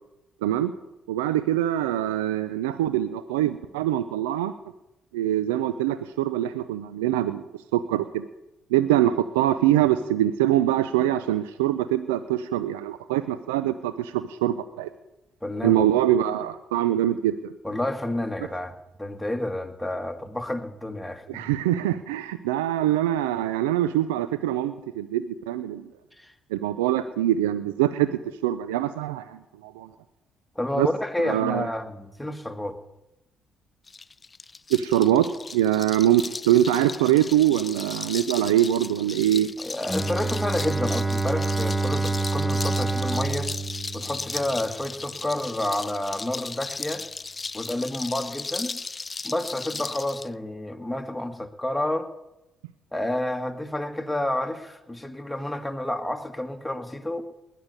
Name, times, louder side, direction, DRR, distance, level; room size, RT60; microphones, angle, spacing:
voice 1, 1.1-4.5 5.1-8.3 8.7-14.9 15.6-17.5 21.3-25.8 26.5-28.1 28.4-29.9 30.8-30.9 31.2-31.7 34.7-39.5, right 12 dB, 90° right, 13 dB, 0.5 m, -23 dB
voice 2, 15.4-15.9 17.6-21.2 26.2-26.3 30.6-32.8 39.6-43.5 43.9-47.0 47.5-48.7 49.2-52.1 52.9-57.2, left 1 dB, 5° left, 6 dB, 2.0 m, -30 dB
sound 1, 33.9-50.3, left 4 dB, 30° left, 0.5 m, -36 dB
Bowed string instrument, 39.9-44.8, right 3 dB, 15° right, 0.9 m, -27 dB
19.5 x 6.8 x 9.6 m, 0.95 s
hypercardioid pair, 55°, 0 cm